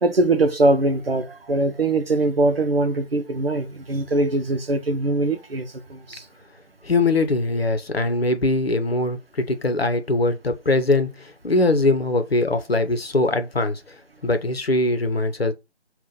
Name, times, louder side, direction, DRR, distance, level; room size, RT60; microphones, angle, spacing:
voice 1, 0.0-6.2, right 2 dB, 60° right, 0.8 m, -22 dB
voice 2, 6.8-14.0 14.2-15.5, left 2 dB, 60° left, 0.9 m, -22 dB
5.5 x 2.5 x 3.8 m
figure-of-eight pair, 160°, 34 cm